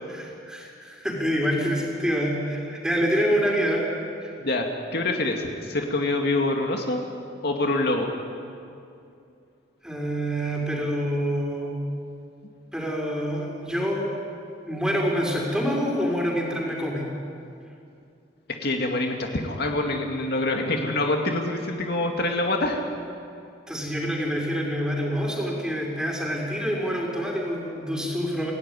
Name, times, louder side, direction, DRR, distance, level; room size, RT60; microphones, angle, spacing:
voice 1, 0.1-3.8 4.2-4.3 9.8-11.8 12.7-14.1 14.7-17.0 23.7-28.5, equal, 5° right, -2 dB, 5.5 m, -26 dB
voice 2, 4.9-7.0 7.4-8.2 18.6-22.8, left 2 dB, 60° left, 2 dB, 2.2 m, -25 dB
27.5 x 17.5 x 9.9 m, 2.5 s
head